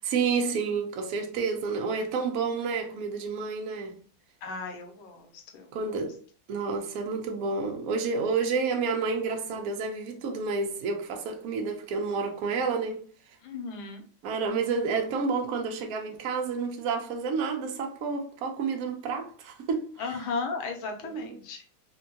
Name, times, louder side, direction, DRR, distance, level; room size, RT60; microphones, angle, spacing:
voice 1, 0.0-4.0 5.7-6.2 6.5-13.0 14.2-19.9 21.0-21.4, right 5 dB, 80° right, 0.7 m, -30 dB
voice 2, 4.4-5.9 13.4-14.0 20.0-21.7, left 4 dB, 75° left, 1.3 m, -36 dB
3.5 x 2.2 x 2.7 m
omnidirectional pair, 2.3 m